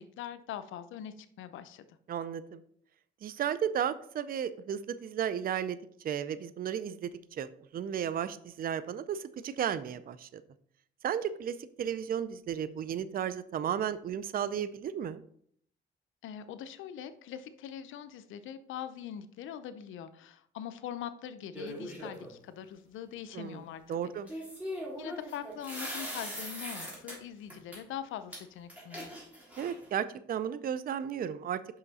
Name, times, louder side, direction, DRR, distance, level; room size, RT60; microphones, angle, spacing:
voice 1, 0.0-1.9 16.2-24.1 25.0-29.1, left 9 dB, 80° left, 12 dB, 0.6 m, -42 dB
voice 2, 2.1-2.6 3.2-5.8 6.0-10.4 11.0-15.2 23.3-23.6 23.9-24.3 29.6-31.6, right 9 dB, 45° right, 14 dB, 0.5 m, -34 dB
sound 1, 21.5-22.3 24.3-27.2 27.5-27.8 28.3-28.4 28.7-29.9, equal, 5° right, 3.1 m, -40 dB
5.8 x 5.6 x 4.1 m, 0.63 s
cardioid pair, 90°, 20 cm